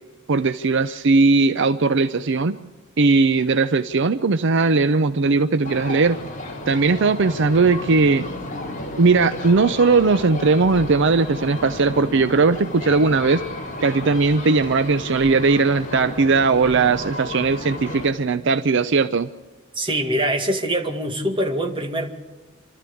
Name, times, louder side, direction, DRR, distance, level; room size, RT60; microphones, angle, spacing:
voice 1, 0.3-2.6 3.0-6.2 6.7-8.3 9.0-13.4 13.8-19.3, right 4 dB, 60° right, 11 dB, 0.6 m, -18 dB
sound 1, 5.6-18.1, left 2 dB, 40° left, 3.1 m, -33 dB
voice 2, 19.8-22.1, right 1 dB, 25° right, 3 dB, 2.2 m, -23 dB
27.5 x 13.5 x 8.5 m, 1.3 s
head